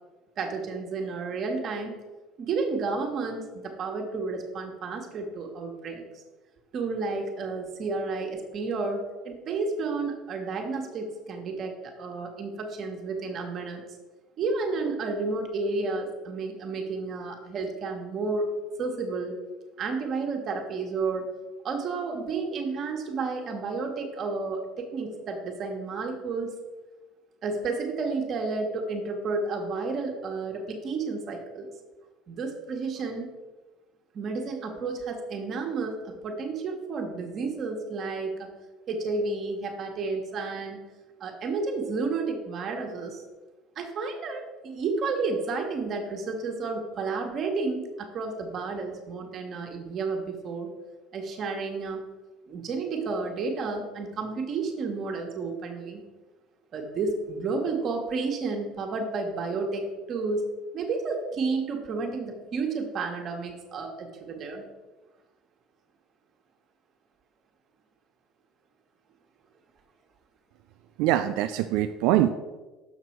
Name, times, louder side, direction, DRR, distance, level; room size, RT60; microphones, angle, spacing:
voice 1, 0.4-2.0 2.4-6.0 6.7-13.8 14.4-18.5 18.8-19.3 19.8-21.3 21.6-26.5 27.4-31.7 32.3-33.3 34.1-38.5 38.9-40.8 41.2-43.2 43.7-50.7 51.1-52.0 52.5-56.0 56.7-60.5 60.7-64.7, right 4 dB, 50° right, 2 dB, 1.6 m, -31 dB
voice 2, 71.0-72.3, right 13 dB, 75° right, 9 dB, 0.3 m, -23 dB
6.7 x 6.0 x 4.6 m, 1.2 s
hypercardioid pair, 80°, 0 cm